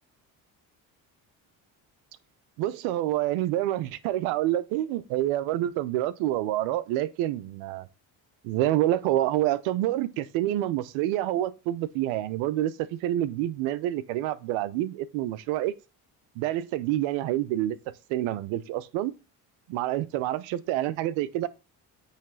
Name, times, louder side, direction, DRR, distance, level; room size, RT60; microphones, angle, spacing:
voice 1, 2.6-7.9 8.4-15.7 16.4-17.8 18.1-19.1 19.7-21.5, right 14 dB, 85° right, 0.8 m, -27 dB
8.6 x 3.3 x 6.2 m
supercardioid pair, 65°, 46 cm